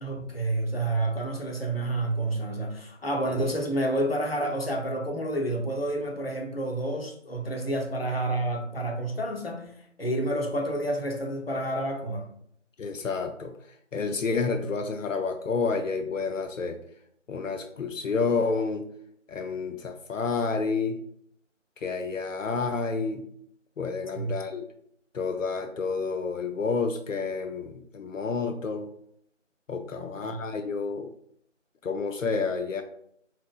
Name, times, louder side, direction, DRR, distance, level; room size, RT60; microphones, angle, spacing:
voice 1, 0.0-9.7 10.0-12.3 24.1-24.4 30.0-30.4, right 1 dB, 50° left, 2 dB, 0.7 m, -29 dB
voice 2, 12.8-13.5 13.9-16.8 17.3-18.9 19.3-21.0 21.8-23.2 23.8-24.6 25.1-28.9 29.7-31.1 31.8-32.8, left 4 dB, 85° left, 6 dB, 0.5 m, -29 dB
4.2 x 3.5 x 2.3 m, 0.69 s
figure-of-eight pair, 170°, 38 cm